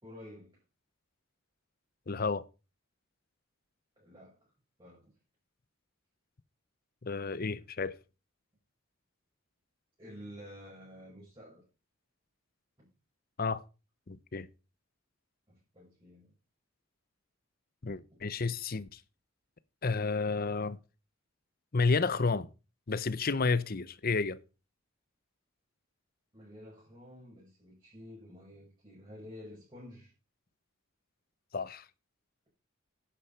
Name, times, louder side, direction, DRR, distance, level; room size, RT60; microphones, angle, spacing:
voice 1, 0.0-0.6 4.0-4.5 4.8-5.1 10.0-11.6 12.8-12.9 15.5-16.3 18.1-18.2 26.3-30.1, left 1 dB, 25° right, 6.5 m, -50 dB
voice 2, 2.1-2.5 7.0-8.0 13.4-13.6 14.1-14.5 17.8-19.0 19.8-20.8 21.7-22.5 22.9-24.4 31.5-31.8, left 4 dB, 45° left, 0.7 m, -31 dB
11.0 x 10.0 x 4.5 m
head